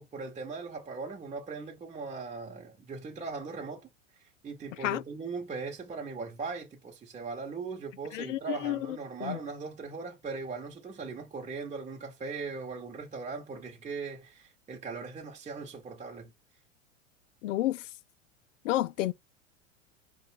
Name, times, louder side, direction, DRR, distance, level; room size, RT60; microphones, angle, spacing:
voice 1, 0.0-3.9 4.2-16.3, right 4 dB, 20° right, 1.2 m, -39 dB
voice 2, 8.1-9.4 17.4-17.9 18.6-19.1, left 15 dB, 70° left, 0.5 m, -31 dB
4.9 x 2.4 x 4.5 m
hypercardioid pair, 95°, 38 cm